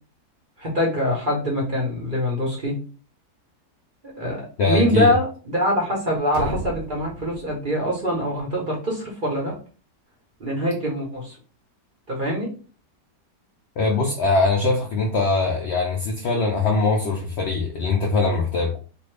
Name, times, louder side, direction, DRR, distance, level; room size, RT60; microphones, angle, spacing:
voice 1, 0.6-2.8 4.0-9.6 10.4-11.4 12.1-12.5, equal, 40° right, -3 dB, 0.9 m, -24 dB
voice 2, 4.6-5.1 13.8-18.8, left 3 dB, 85° left, 1 dB, 0.5 m, -22 dB
sound 1, 6.3-8.2, right 1 dB, 75° right, 1.2 m, -34 dB
2.7 x 2.6 x 3.2 m, 0.37 s
omnidirectional pair, 1.8 m